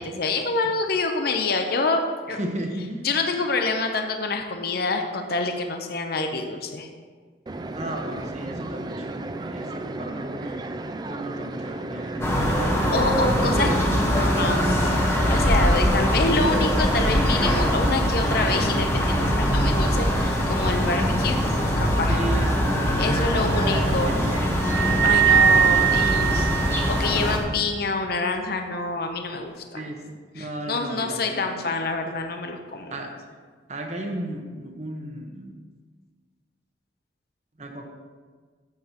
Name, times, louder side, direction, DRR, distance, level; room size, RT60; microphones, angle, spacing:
voice 1, 0.0-2.0 2.3-2.4 3.0-6.9 12.9-13.7 14.1-14.6 15.3-21.4 21.8-22.2 23.0-24.1 25.0-29.9 30.4-32.9, left 3 dB, 55° left, 5 dB, 0.7 m, -27 dB
voice 2, 2.3-3.1 7.7-10.7 11.0-12.8 13.3-16.0 22.0-25.0 27.3-27.4 29.7-31.7 32.9-33.1 33.7-35.5 37.6-37.8, right 1 dB, 40° right, 2 dB, 1.2 m, -34 dB
sound 1, 7.5-17.4, right 2 dB, 25° right, 0.4 m, -34 dB
sound 2, 12.2-27.4, equal, 15° left, 1.1 m, -22 dB
sound 3, 24.6-27.3, right 10 dB, 65° right, 0.7 m, -21 dB
13.5 x 8.1 x 3.0 m, 1.5 s
head